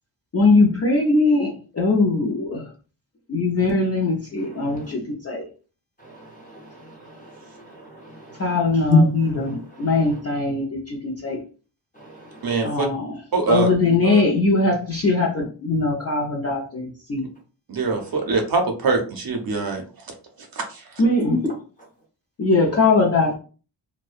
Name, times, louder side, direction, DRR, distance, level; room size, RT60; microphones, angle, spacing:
voice 1, 0.3-2.7 3.3-5.4 8.4-8.9 9.5-11.4 12.6-13.2 13.5-17.3 21.0-21.4 22.4-23.4, left 3 dB, 35° left, 0.4 m, -21 dB
voice 2, 4.4-4.9 6.0-10.2 11.9-12.8 17.9-18.2 21.3-21.4 22.6-22.8, left 2 dB, 20° left, 0.8 m, -28 dB
voice 3, 12.4-12.9 13.3-13.7 14.0-14.2 17.7-19.8 20.5-20.8, right 3 dB, 50° right, 0.6 m, -23 dB
2.6 x 2.1 x 2.4 m
wide cardioid pair, 165°, 46 cm